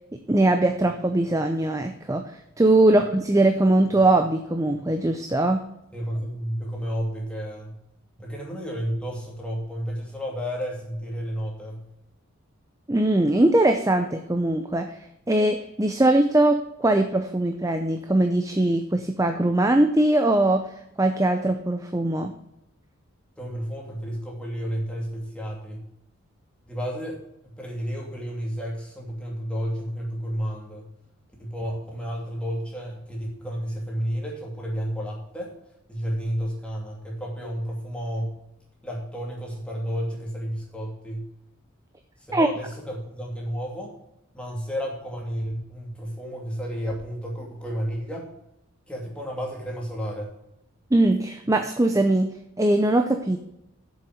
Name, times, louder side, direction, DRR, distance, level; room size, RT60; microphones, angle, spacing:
voice 1, 0.3-2.3 2.6-5.6 12.9-15.0 15.3-20.7 21.0-22.3 42.3-42.5 50.9-52.3 52.6-53.4, right 1 dB, 15° right, 6 dB, 0.6 m, -21 dB
voice 2, 5.9-7.8 8.2-11.9 23.4-25.9 26.7-30.9 31.4-35.5 35.9-38.4 38.8-41.3 42.2-43.9 44.3-48.3 48.9-50.3, equal, 5° left, -2 dB, 2.6 m, -31 dB
7.7 x 7.2 x 7.8 m, 0.84 s
head